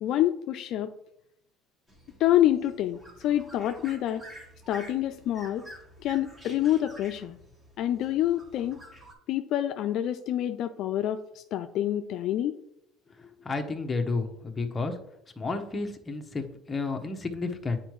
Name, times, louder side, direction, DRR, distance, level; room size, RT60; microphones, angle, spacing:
voice 1, 0.0-0.9 2.2-4.2 4.7-5.7 6.0-7.4 7.8-8.8 9.3-12.5, left 12 dB, 60° left, 9 dB, 0.4 m, -27 dB
sound 1, 1.9-9.1, right 1 dB, 15° right, 1.8 m, -49 dB
voice 2, 13.2-15.0 15.4-17.8, left 3 dB, 20° left, 4 dB, 0.9 m, -31 dB
8.9 x 4.5 x 3.1 m, 0.76 s
cardioid pair, 120°, 0 cm